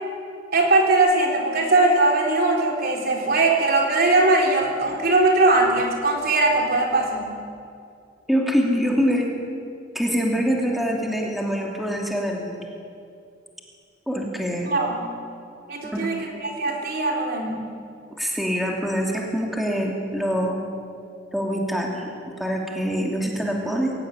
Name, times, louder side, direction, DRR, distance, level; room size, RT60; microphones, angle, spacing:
voice 1, 0.5-7.4 14.7-15.0 15.7-17.6, right 2 dB, 55° right, 0 dB, 3.7 m, -20 dB
voice 2, 8.3-9.3 9.9-12.7 14.1-14.7 15.9-16.1 18.2-20.6 21.3-22.1 22.4-23.9, equal, ahead, -1 dB, 2.8 m, -24 dB
24.0 x 16.5 x 9.8 m, 2.4 s
head